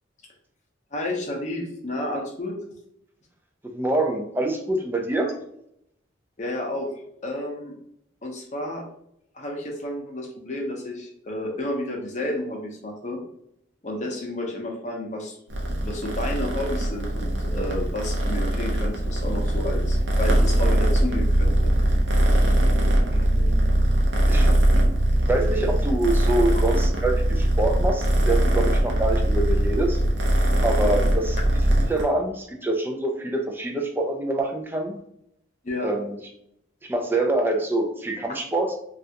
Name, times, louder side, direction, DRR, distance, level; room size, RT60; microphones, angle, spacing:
voice 1, 0.9-2.5 6.4-6.9 7.2-7.7 8.2-8.8 9.3-13.2 13.8-15.4 15.8-21.7 35.6-35.9, left 1 dB, 40° left, 1 dB, 0.6 m, -31 dB
voice 2, 3.7-5.3 23.1-23.7 24.3-24.5 25.3-30.0 30.6-31.4 31.9-35.0 35.8-36.2 36.8-38.7, right 2 dB, 10° right, 2 dB, 0.3 m, -25 dB
Purr, 15.5-32.0, right 1 dB, 65° right, 0.6 m, -21 dB
3.2 x 2.4 x 2.8 m, 0.73 s
head